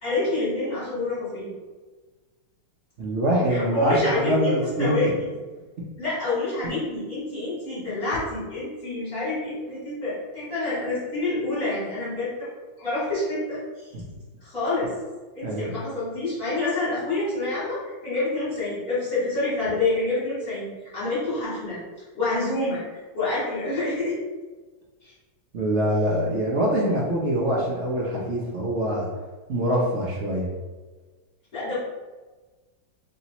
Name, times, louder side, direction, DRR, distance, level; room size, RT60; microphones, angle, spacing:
voice 1, 0.0-1.5 3.5-5.1 6.0-12.5 12.8-13.9 14.4-14.9 15.3-21.8 22.1-24.2 25.0-25.1 31.5-31.8, left 2 dB, 45° left, -10 dB, 1.8 m, -27 dB
voice 2, 3.0-5.1 13.9-14.0 15.4-15.7 25.5-29.1 29.5-30.5, right 1 dB, 65° right, -4 dB, 0.7 m, -24 dB
3.2 x 2.9 x 4.0 m, 1.3 s
omnidirectional pair, 2.0 m